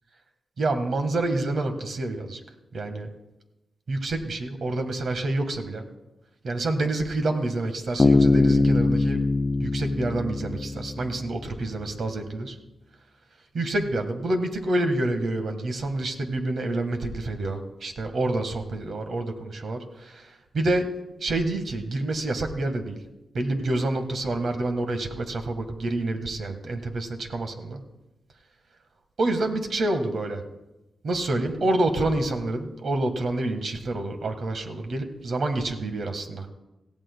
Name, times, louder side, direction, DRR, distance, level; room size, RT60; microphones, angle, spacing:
voice 1, 0.6-2.4 2.7-3.1 3.9-5.9 6.4-9.2 9.6-12.6 13.5-20.9 21.2-23.0 23.3-27.8 29.2-30.4 31.0-36.5, right 2 dB, 65° right, 6 dB, 1.5 m, -28 dB
Bass guitar, 8.0-11.5, left 3 dB, 25° left, 0.3 m, -22 dB
17.5 x 15.0 x 2.2 m, 0.99 s
cardioid pair, 85°, 0 cm